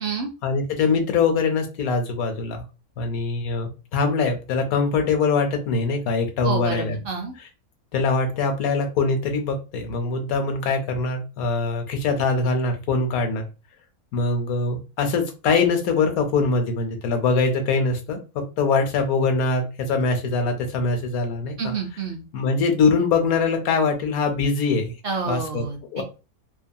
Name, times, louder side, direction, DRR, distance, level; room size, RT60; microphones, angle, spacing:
voice 1, 0.4-2.6 3.0-7.0 7.9-13.4 14.1-18.2 18.6-21.7 22.3-24.9 25.3-25.6 25.9-26.0, left 4 dB, 80° left, 5 dB, 1.1 m, -23 dB
voice 2, 6.4-7.3 21.6-22.2 25.0-26.0, right 5 dB, 65° right, 1 dB, 0.6 m, -29 dB
2.7 x 2.2 x 2.6 m, 0.31 s
omnidirectional pair, 1.5 m